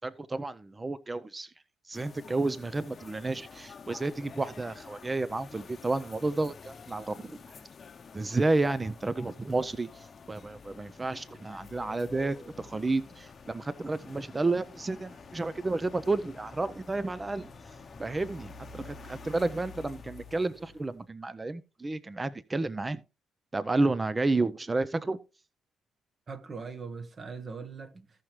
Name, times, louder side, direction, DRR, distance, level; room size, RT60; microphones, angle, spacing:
voice 1, 0.0-1.5 1.9-7.4 8.1-17.5 18.0-23.0 23.5-25.2, right 2 dB, 20° right, 0.5 m, -31 dB
sound 1, 1.9-21.0, left 4 dB, 40° left, 0.8 m, -49 dB
voice 2, 26.3-28.2, right 5 dB, 40° right, 1.1 m, -41 dB
15.0 x 5.9 x 3.1 m
cardioid pair, 90°, 0 cm